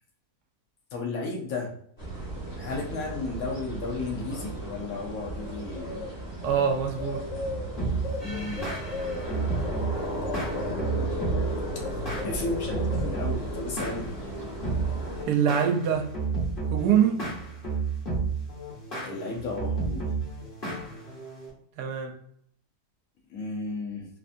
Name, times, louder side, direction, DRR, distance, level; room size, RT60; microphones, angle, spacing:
voice 1, 0.9-1.7 2.6-6.2 8.2-8.7 10.6-11.1 11.9-14.3 19.0-20.1 23.3-24.1, left 3 dB, 65° left, 0 dB, 1.2 m, -34 dB
sound 1, 2.0-15.2, equal, 15° left, 0.7 m, -34 dB
voice 2, 6.4-7.2 15.3-16.1 16.7-17.3 21.8-22.1, right 8 dB, 80° right, 4 dB, 1.2 m, -24 dB
sound 2, 7.8-21.5, right 4 dB, 35° left, 1.2 m, -32 dB
3.2 x 2.6 x 2.5 m, 0.66 s
omnidirectional pair, 1.7 m